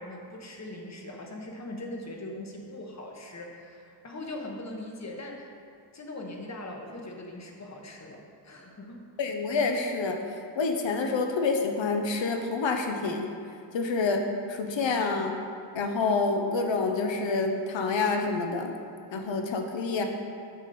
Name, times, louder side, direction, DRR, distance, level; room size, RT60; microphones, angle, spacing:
voice 1, 0.0-5.5 5.9-9.0 19.4-19.5, left 1 dB, 35° left, 1 dB, 1.1 m, -41 dB
voice 2, 9.2-10.2 10.5-13.3 13.7-14.2 14.5-15.3 15.7-18.7 19.1-20.0, left 4 dB, 75° left, 4 dB, 0.9 m, -27 dB
8.7 x 6.9 x 4.2 m, 2.4 s
wide cardioid pair, 135°, 45 cm